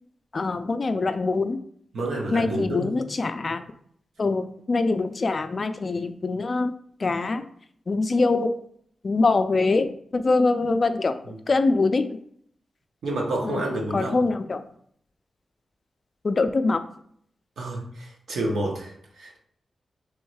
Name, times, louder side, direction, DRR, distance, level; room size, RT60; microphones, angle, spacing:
voice 1, 0.3-1.6 2.3-3.6 4.2-6.7 7.0-7.4 7.9-8.6 9.0-11.2 11.5-12.2 13.4-14.6 16.2-16.9, left 3 dB, 40° left, 10 dB, 0.3 m, -24 dB
voice 2, 1.9-2.9 11.2-11.4 13.0-14.2 17.6-19.4, right 1 dB, 85° right, -2 dB, 1.2 m, -29 dB
3.6 x 3.1 x 4.6 m, 0.65 s
wide cardioid pair, 140°, 0 cm